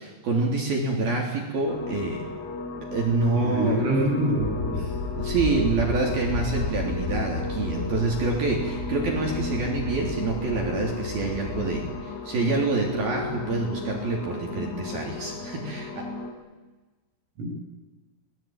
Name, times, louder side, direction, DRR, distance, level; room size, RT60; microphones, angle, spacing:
voice 1, 0.0-2.2 2.8-3.8 5.1-16.0, right 3 dB, 50° right, 0 dB, 4.9 m, -27 dB
sound 1, 1.7-16.3, left 3 dB, 55° left, 6.0 m, -35 dB
voice 2, 3.3-4.9 17.4-17.5, right 1 dB, 80° right, -2 dB, 9.0 m, -25 dB
sound 2, 4.4-12.0, left 4 dB, 85° left, 6.2 m, -33 dB
26.5 x 21.5 x 9.1 m, 1.2 s
omnidirectional pair, 5.9 m